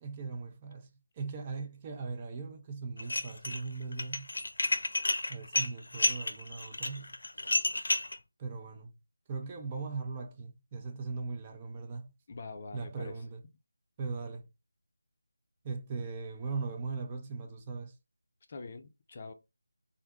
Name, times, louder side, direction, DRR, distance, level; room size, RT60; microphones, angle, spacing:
voice 1, 0.0-4.3 5.3-7.2 8.4-8.9 9.3-12.1 12.7-13.4 14.0-14.5 15.6-18.0, right 4 dB, 20° right, 0.5 m, -39 dB
Dishes pots and pans, 3.0-3.6 3.9-8.2, left 2 dB, 75° left, 0.8 m, -30 dB
voice 2, 12.3-13.2 18.5-19.3, left 3 dB, 35° left, 0.6 m, -44 dB
3.5 x 2.6 x 3.6 m
figure-of-eight pair, 170°, 0 cm